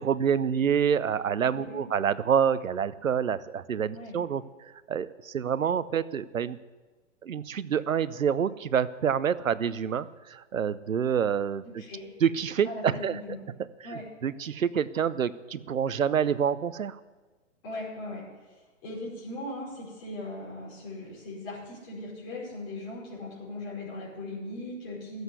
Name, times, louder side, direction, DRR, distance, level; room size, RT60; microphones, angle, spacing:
voice 1, 0.0-6.6 7.2-11.6 12.2-13.2 13.6-17.0, right 8 dB, 85° right, 16 dB, 0.8 m, -27 dB
voice 2, 1.5-1.9 3.9-4.2 11.6-12.1 12.6-13.4 13.8-14.0 17.6-25.2, left 2 dB, 30° left, -6 dB, 5.2 m, -39 dB
14.0 x 8.0 x 8.1 m, 1.2 s
hypercardioid pair, 140°, 39 cm